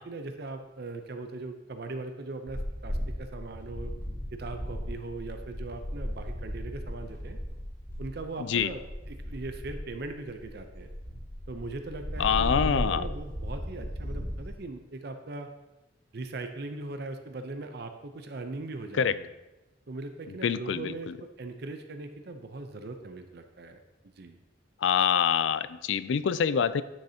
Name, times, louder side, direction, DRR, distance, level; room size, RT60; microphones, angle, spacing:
voice 1, 0.0-3.9 4.3-7.4 8.0-8.8 9.1-10.9 11.5-15.5 16.1-19.3 19.9-23.8 24.2-24.4, right 2 dB, 60° right, 7 dB, 0.6 m, -39 dB
sound 1, 2.5-14.5, equal, 15° left, 2.0 m, -36 dB
voice 2, 8.4-8.7 12.2-13.0 19.0-19.2 20.4-21.1 24.8-26.8, left 7 dB, 80° left, 15 dB, 0.4 m, -25 dB
9.8 x 6.5 x 2.8 m, 1.0 s
head